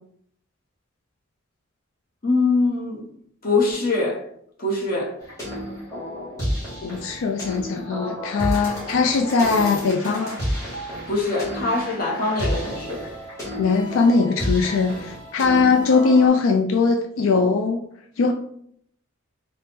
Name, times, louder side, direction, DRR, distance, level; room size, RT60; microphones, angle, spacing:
voice 1, 2.2-3.0 3.4-4.2 4.6-5.1 11.1-13.0 15.5-15.7, left 3 dB, 45° left, -2 dB, 0.9 m, -23 dB
sound 1, 5.2-16.3, equal, 15° left, 1.4 m, -31 dB
voice 2, 6.8-10.4 13.6-17.8 18.2-18.3, left 4 dB, 80° left, 3 dB, 0.4 m, -20 dB
3.5 x 2.0 x 4.1 m, 0.68 s
head